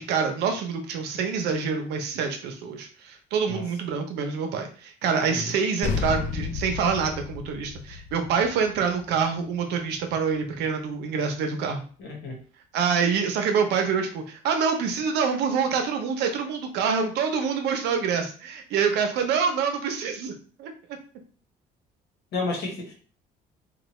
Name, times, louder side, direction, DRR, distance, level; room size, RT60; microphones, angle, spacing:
voice 1, 0.1-11.8 12.7-20.7, right 6 dB, 85° right, 4 dB, 0.7 m, -26 dB
voice 2, 5.1-5.5 12.0-12.4 22.3-22.9, left 3 dB, 75° left, 0 dB, 1.2 m, -32 dB
sound 1, 5.8-10.6, left 5 dB, 50° left, 0.4 m, -33 dB
3.2 x 2.2 x 3.1 m, 0.41 s
cardioid pair, 110°, 17 cm